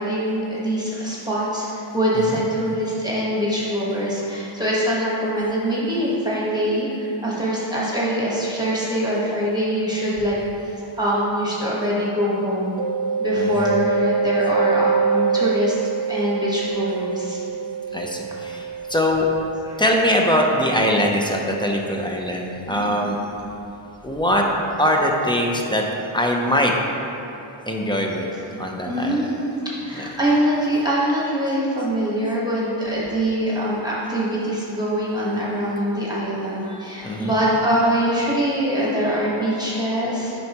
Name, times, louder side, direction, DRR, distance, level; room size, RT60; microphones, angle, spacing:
voice 1, 0.0-10.4 10.6-12.8 13.2-17.4 19.6-19.8 22.7-23.0 28.3-28.4 28.8-40.3, equal, 10° right, -7 dB, 1.3 m, -23 dB
Mallet percussion, 12.8-22.4, right 6 dB, 50° right, 0.5 m, -26 dB
voice 2, 13.4-13.8 17.9-19.3 19.8-23.2 24.0-24.4 24.8-25.9 26.1-26.7 27.7-28.3 28.6-29.1 29.9-30.1 37.0-37.4, equal, 10° left, 0 dB, 0.6 m, -22 dB
9.3 x 5.4 x 3.0 m, 2.9 s
wide cardioid pair, 125°, 49 cm